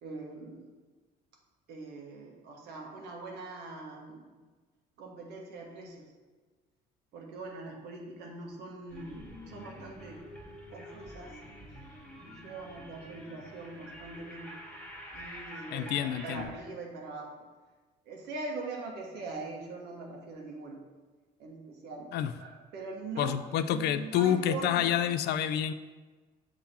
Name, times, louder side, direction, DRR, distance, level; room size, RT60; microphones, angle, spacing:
voice 1, 0.0-0.7 1.7-4.3 5.0-6.1 7.1-10.2 10.7-11.3 12.2-14.5 15.1-17.4 18.0-20.8 21.4-22.1 22.4-25.1, right 3 dB, 80° right, 0 dB, 1.4 m, -42 dB
sound 1, 8.9-16.5, equal, 5° left, 1.3 m, -47 dB
voice 2, 15.7-16.5 22.1-22.3 23.2-25.7, left 10 dB, 75° left, 11 dB, 0.4 m, -28 dB
7.1 x 3.8 x 4.3 m, 1.3 s
cardioid pair, 110°, 17 cm